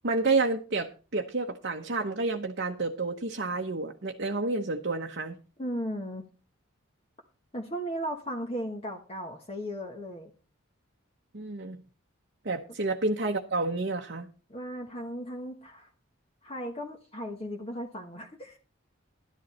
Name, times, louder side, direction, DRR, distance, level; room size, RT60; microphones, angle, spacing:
voice 1, 0.0-5.3 11.3-11.8 12.4-14.3, right 3 dB, 50° right, 2 dB, 0.9 m, -29 dB
voice 2, 5.6-6.2 7.5-10.3 14.5-15.9 16.4-18.6, equal, 30° left, 1 dB, 1.3 m, -36 dB
12.5 x 10.5 x 4.3 m, 0.35 s
head